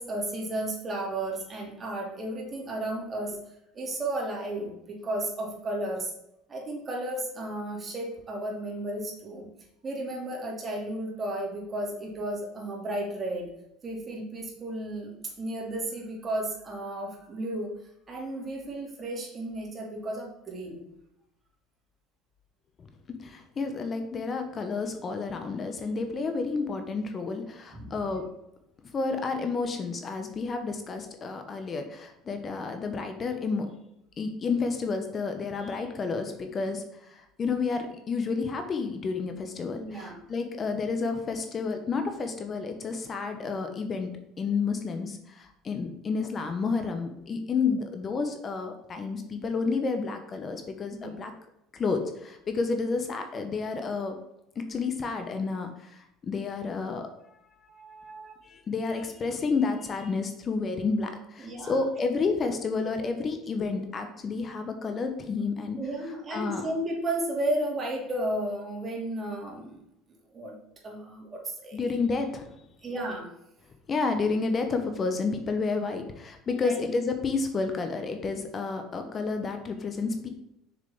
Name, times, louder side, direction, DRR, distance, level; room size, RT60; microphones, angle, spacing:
voice 1, 0.0-3.4 3.7-6.1 6.5-9.5 9.8-13.5 13.8-17.7 18.1-20.8 27.7-28.0 39.7-40.2 50.9-51.1 57.7-58.3 61.4-61.7 65.8-69.8 70.3-70.6 70.8-71.9 72.8-73.3 76.5-76.8, right 1 dB, 30° right, -1 dB, 2.8 m, -33 dB
voice 2, 23.2-28.3 28.9-33.7 34.2-44.1 44.4-51.3 51.7-54.2 54.5-57.0 57.9-58.1 58.4-65.8 66.3-66.6 71.7-72.5 73.9-80.3, left 4 dB, 35° left, 6 dB, 1.0 m, -30 dB
6.6 x 6.5 x 3.7 m, 0.83 s
supercardioid pair, 85°, 0 cm